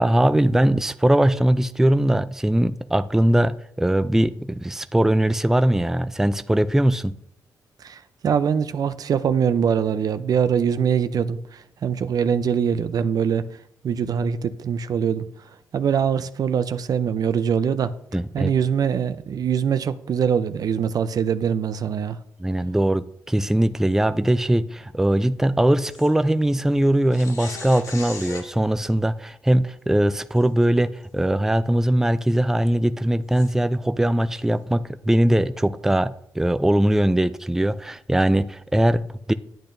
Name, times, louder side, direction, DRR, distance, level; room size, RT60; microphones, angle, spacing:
voice 1, 0.0-7.1 18.1-18.5 22.4-39.3, right 1 dB, 5° right, 0.4 m, -21 dB
voice 2, 7.8-11.4 11.8-13.4 13.8-15.3 15.7-17.9 18.3-22.2, right 7 dB, 60° right, 0.5 m, -23 dB
sound 1, 25.9-26.1 27.1-28.5 30.4-30.5 31.0-31.1 33.3-33.5, left 4 dB, 55° left, 2.0 m, -37 dB
10.5 x 8.6 x 2.6 m
cardioid pair, 65°, 7 cm